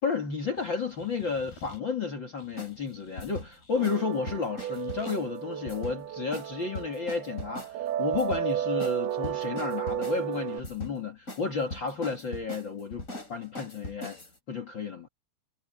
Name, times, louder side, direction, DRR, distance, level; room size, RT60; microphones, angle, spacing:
voice 1, 0.0-14.2 14.5-15.1, left 5 dB, 40° left, 2.2 m, -32 dB
sound 1, 0.6-1.8 2.4-4.1 4.6-5.1, left 3 dB, 80° left, 7.8 m, -53 dB
sound 2, 2.6-2.7 3.2-3.5 3.8-4.0 4.3-5.3 5.7-6.0 6.3-6.5 6.7-7.7 8.1-8.4 8.8-9.0 9.2-10.2 10.6-11.0 11.3-11.4 11.7-14.4, left 2 dB, 20° left, 4.5 m, -40 dB
sound 3, 3.7-10.6, right 11 dB, 90° right, 3.0 m, -33 dB
omnidirectional pair, 4.3 m